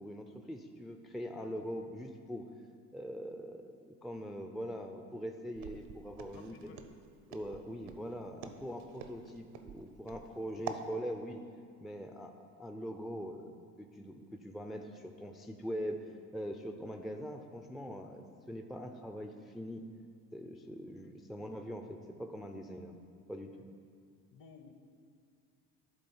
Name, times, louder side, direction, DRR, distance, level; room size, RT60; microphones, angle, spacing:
voice 1, 0.0-2.4 2.9-6.8 7.3-11.4 11.8-19.8 20.3-23.0 23.3-23.5, equal, ahead, 5 dB, 0.5 m, -42 dB
Walk footsteps, 5.6-10.9, right 7 dB, 60° right, 0.8 m, -46 dB
voice 2, 6.3-6.8 15.0-15.1 21.0-21.1 23.5-23.6 24.3-24.7, left 6 dB, 50° left, 6 dB, 1.1 m, -56 dB
11.0 x 3.9 x 5.5 m, 2.2 s
hypercardioid pair, 65°, 44 cm